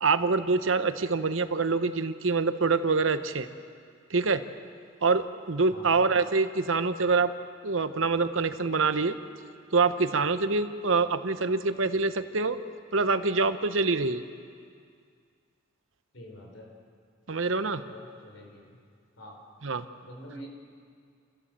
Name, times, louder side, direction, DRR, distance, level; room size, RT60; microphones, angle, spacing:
voice 1, 0.0-3.5 4.1-4.4 5.0-7.3 7.6-9.2 9.7-12.6 12.9-14.2 17.3-17.8 19.6-19.8, right 4 dB, 70° right, 10 dB, 1.0 m, -25 dB
voice 2, 16.1-16.7 17.9-18.7 19.2-19.3 20.0-20.5, equal, 70° left, 1 dB, 4.6 m, -45 dB
27.5 x 15.5 x 7.5 m, 2.2 s
head